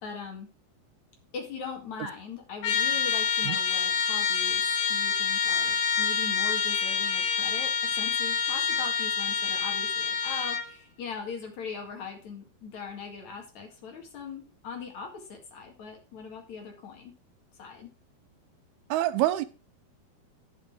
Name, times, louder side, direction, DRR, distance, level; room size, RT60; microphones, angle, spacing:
voice 1, 0.0-0.5 1.3-4.6 4.9-17.1 17.6-17.9, left 5 dB, 55° left, 3 dB, 3.0 m, -40 dB
Trumpet, 2.6-10.7, left 6 dB, 80° left, 3.0 m, -27 dB
voice 2, 18.9-19.5, right 14 dB, 85° right, 12 dB, 2.6 m, -25 dB
10.0 x 6.2 x 4.8 m, 0.33 s
omnidirectional pair, 4.4 m